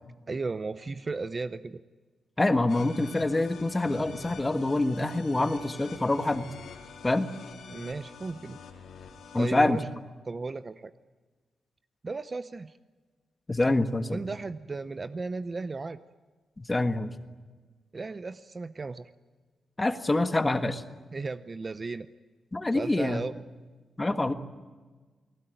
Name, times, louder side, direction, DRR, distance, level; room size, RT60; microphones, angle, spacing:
voice 1, 0.3-1.8 7.7-8.6 9.4-9.8 10.3-10.9 12.0-12.7 14.1-16.0 17.9-19.1 21.1-22.1 22.7-23.3, right 3 dB, 30° right, 12 dB, 0.8 m, -35 dB
voice 2, 2.4-6.5 7.0-7.3 9.3-9.8 13.5-14.2 16.6-17.1 19.8-20.8 22.5-23.2 24.0-24.3, left 2 dB, 15° left, 9 dB, 1.5 m, -26 dB
sound 1, 2.7-9.6, left 5 dB, 90° left, 4.3 m, -46 dB
29.0 x 19.5 x 9.3 m, 1.4 s
wide cardioid pair, 150°, 0 cm